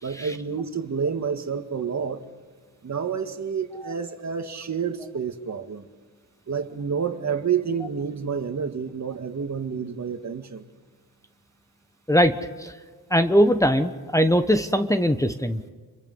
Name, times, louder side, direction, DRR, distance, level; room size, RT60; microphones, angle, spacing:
voice 1, 0.0-2.2 2.8-5.9 6.5-10.6, right 6 dB, 45° right, 2.0 m, -29 dB
voice 2, 12.1-12.7 13.1-15.6, equal, 10° left, 1.2 m, -21 dB
29.5 x 23.0 x 5.6 m
cardioid pair, 90°, 38 cm